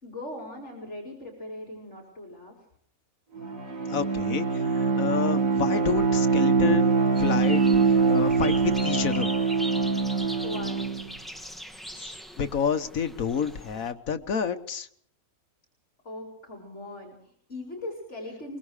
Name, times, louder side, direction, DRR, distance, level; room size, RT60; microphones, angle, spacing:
voice 1, 0.0-2.5 10.4-10.9 16.0-18.6, left 1 dB, 50° left, 0 dB, 4.8 m, -39 dB
Bowed string instrument, 3.4-11.1, right 4 dB, 70° right, 2.8 m, -24 dB
voice 2, 3.9-6.9 7.2-7.6 7.9-9.3 11.9-14.9, left 6 dB, 70° left, 9 dB, 1.6 m, -29 dB
sound 1, 7.2-13.9, equal, ahead, 1.4 m, -40 dB
23.5 x 22.5 x 4.9 m, 0.63 s
omnidirectional pair, 1.5 m